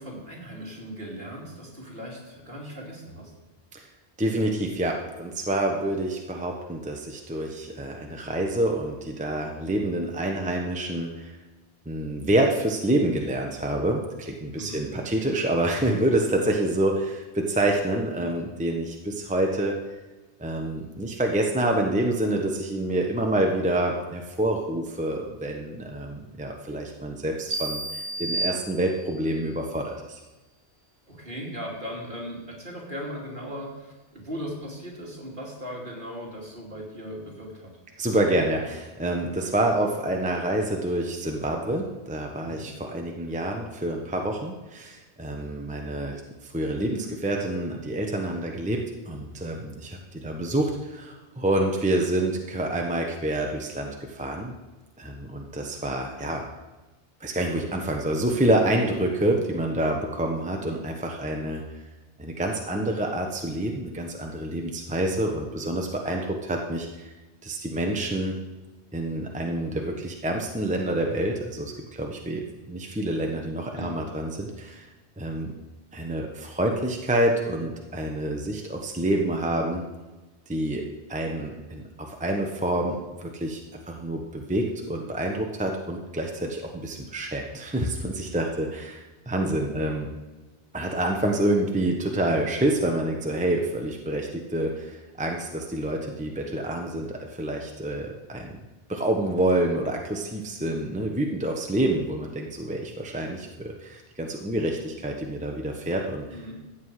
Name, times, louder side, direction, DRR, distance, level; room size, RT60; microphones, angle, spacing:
voice 1, 0.0-3.3 14.5-14.8 31.1-37.7 42.4-42.7 73.7-74.0 106.3-106.6, equal, 50° right, -2 dB, 2.9 m, -38 dB
voice 2, 4.2-11.4 11.9-19.7 20.4-30.2 38.0-54.5 55.0-56.4 57.2-61.6 62.2-67.1 67.4-68.4 68.9-74.9 75.2-75.5 75.9-79.8 80.5-80.8 81.1-83.6 83.9-90.1 90.7-98.6 98.9-106.4, right 1 dB, 5° right, 1 dB, 1.0 m, -27 dB
sound 1, 27.5-29.3, right 2 dB, 70° right, 2.7 m, -31 dB
14.5 x 8.0 x 4.9 m, 1.2 s
omnidirectional pair, 1.2 m